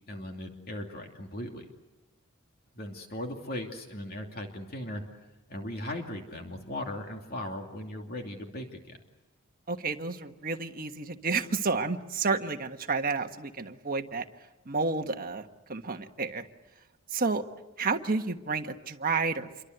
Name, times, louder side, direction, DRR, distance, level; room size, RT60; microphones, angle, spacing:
voice 1, 0.1-1.7 2.7-5.0 5.5-9.0, left 1 dB, 45° left, 2 dB, 2.7 m, -38 dB
voice 2, 9.7-14.2 14.6-16.5 17.1-17.4 17.8-19.6, right 4 dB, 40° right, 6 dB, 1.4 m, -30 dB
28.0 x 24.0 x 8.0 m, 1.1 s
head